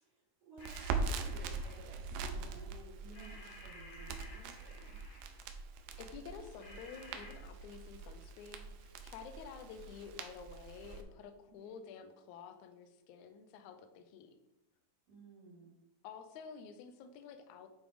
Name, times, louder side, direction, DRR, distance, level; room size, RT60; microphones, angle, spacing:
voice 1, 0.0-5.0 11.6-11.8 15.1-15.7, right 3 dB, 65° right, -8 dB, 3.9 m, -55 dB
sound 1, 0.6-2.1 3.1-5.5 6.6-7.3, left 2 dB, 40° left, 1.8 m, -56 dB
Crackle, 0.6-11.0, right 4 dB, 80° right, 2.3 m, -42 dB
voice 2, 6.0-14.3 16.0-17.7, left 6 dB, 75° left, 7 dB, 1.9 m, -50 dB
9.2 x 4.2 x 5.0 m, 0.94 s
omnidirectional pair, 4.2 m